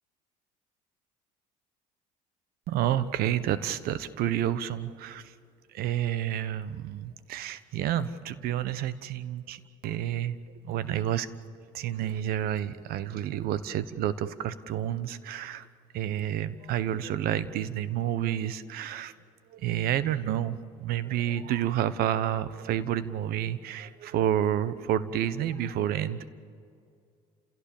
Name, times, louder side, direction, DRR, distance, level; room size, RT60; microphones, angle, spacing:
voice 1, 2.7-5.3 5.7-10.4 10.6-11.3 11.7-15.7 15.9-19.1 19.5-26.3, right 11 dB, 65° right, 15 dB, 1.1 m, -29 dB
30.0 x 16.5 x 7.2 m, 2.3 s
supercardioid pair, 80°, 17 cm